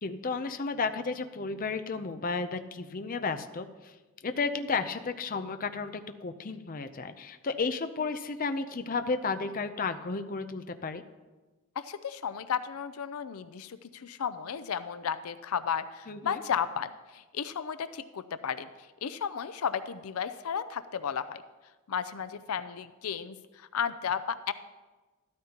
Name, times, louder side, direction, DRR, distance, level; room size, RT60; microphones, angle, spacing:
voice 1, 0.0-3.9 4.2-11.0 16.1-16.4, left 4 dB, 40° left, 8 dB, 0.6 m, -33 dB
voice 2, 11.8-21.4 21.9-24.5, left 7 dB, 85° left, 13 dB, 0.5 m, -34 dB
13.0 x 13.0 x 2.9 m, 1.2 s
head